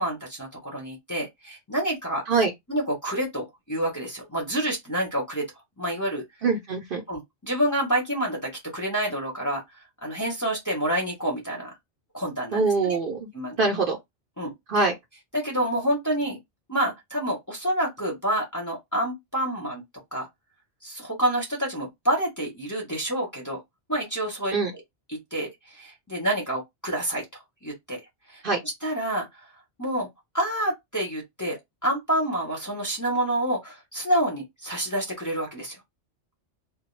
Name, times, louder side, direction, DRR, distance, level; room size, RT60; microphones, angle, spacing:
voice 1, 0.0-2.2 2.7-5.5 5.8-6.2 7.1-9.6 10.0-11.7 12.1-13.0 13.3-13.7 14.4-14.5 15.3-16.4 16.7-19.8 20.1-20.3 20.8-23.6 23.9-24.8 25.1-25.5 25.7-27.2 27.6-28.0 28.3-29.3 29.8-30.1 30.3-35.8, right 1 dB, 20° left, 0.7 m, -28 dB
voice 2, 6.4-7.0 12.5-13.3 13.6-14.0 14.7-14.9 24.5-24.7 28.4-28.6, right 4 dB, 60° right, 0.7 m, -23 dB
2.3 x 2.1 x 3.1 m
omnidirectional pair, 1.2 m